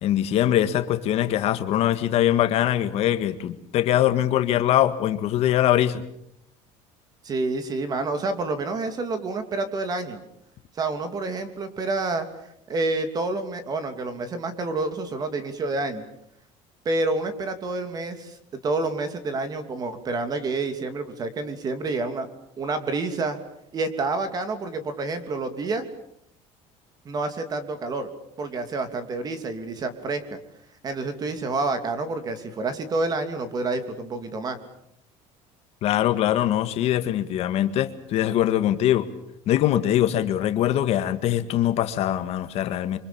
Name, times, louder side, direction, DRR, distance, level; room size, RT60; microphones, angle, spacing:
voice 1, 0.0-6.0 35.8-39.1 39.5-43.0, left 12 dB, 50° left, 9 dB, 1.7 m, -22 dB
voice 2, 7.2-10.2 10.7-12.3 12.7-16.0 16.8-22.3 22.6-23.4 23.7-25.9 27.0-28.1 28.4-30.4 30.8-34.6, right 3 dB, 30° right, 9 dB, 2.9 m, -28 dB
29.0 x 25.0 x 7.0 m, 0.74 s
cardioid pair, 165°, 14 cm